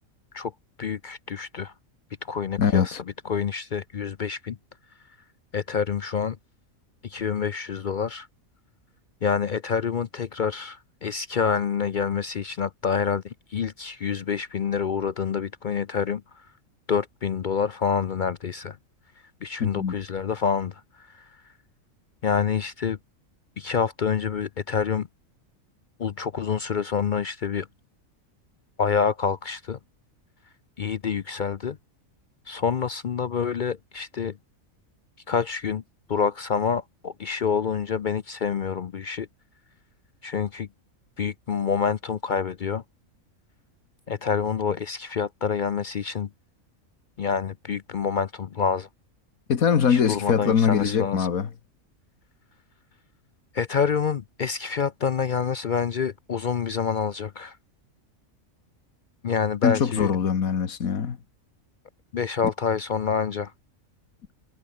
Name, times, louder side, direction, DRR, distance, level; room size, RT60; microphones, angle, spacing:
voice 1, 0.8-1.7 2.2-3.0 3.2-4.6 5.5-6.4 7.0-8.3 9.2-16.5 16.9-18.8 19.4-21.3 22.2-23.0 23.6-25.1 26.0-27.7 28.8-29.8 30.8-31.8 32.5-34.4 35.3-35.8 36.1-39.3 40.2-40.7 41.2-42.8 44.1-46.3 47.2-48.9 49.9-51.3 53.5-57.6 59.2-60.1 62.1-63.5, left 6 dB, 55° left, 0.5 m, -27 dB
voice 2, 2.6-3.0 19.6-20.0 49.5-51.5 59.6-61.2, left 7 dB, 85° left, 1.9 m, -22 dB
omnidirectional pair, 1.4 m